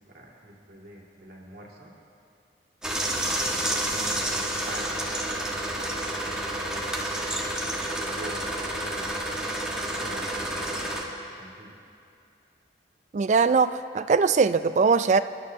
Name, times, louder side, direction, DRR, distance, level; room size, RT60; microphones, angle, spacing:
voice 1, 0.0-1.9 3.2-4.9 5.3-7.3 8.0-9.2 10.0-10.9 11.4-11.8, right 1 dB, 60° right, -4 dB, 2.4 m, -45 dB
sound 1, 2.8-11.0, right 1 dB, 5° right, 1.3 m, -29 dB
voice 2, 13.1-15.2, right 5 dB, 40° right, 12 dB, 0.3 m, -21 dB
27.0 x 11.5 x 2.8 m, 2.5 s
head